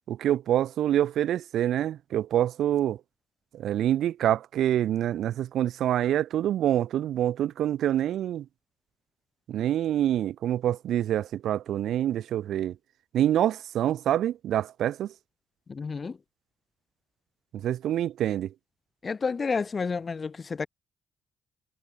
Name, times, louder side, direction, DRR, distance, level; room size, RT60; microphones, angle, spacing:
voice 1, 0.1-3.0 3.5-8.4 9.5-12.7 13.1-15.1 17.5-18.5, right 11 dB, 75° right, 0.6 m, -26 dB
voice 2, 15.7-16.2 19.0-20.7, left 5 dB, 35° left, 0.7 m, -30 dB
cardioid pair, 90°, 0 cm